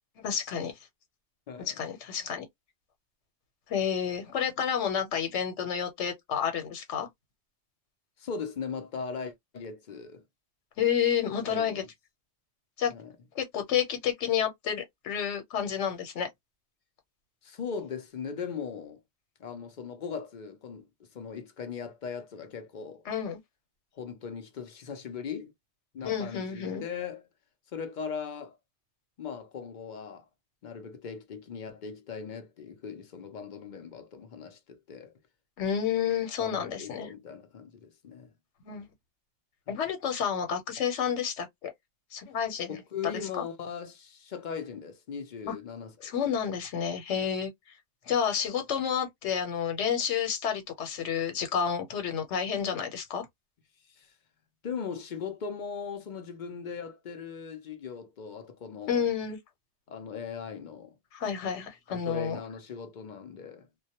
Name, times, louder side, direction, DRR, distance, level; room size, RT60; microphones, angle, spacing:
voice 1, 0.2-0.7 1.6-2.5 3.7-7.1 10.8-11.8 12.8-12.9 13.3-16.3 23.1-23.4 26.0-26.8 35.6-37.1 38.6-38.9 39.7-41.7 42.1-42.8 43.4-43.5 45.5-45.6 46.0-47.5 48.1-53.3 58.9-59.4 61.1-62.4, left 8 dB, 90° left, 1.1 m, -30 dB
voice 2, 1.5-1.8 8.2-10.2 11.5-11.9 12.9-13.1 17.4-19.0 19.4-23.0 23.9-25.5 25.9-27.3 27.7-28.6 29.2-30.2 30.6-35.1 36.4-38.3 39.7-39.8 42.7-46.1 47.1-47.2 53.9-54.1 54.6-59.1 59.9-60.9 61.9-63.7, left 6 dB, 55° left, 0.6 m, -39 dB
2.2 x 2.1 x 2.7 m
omnidirectional pair, 1.2 m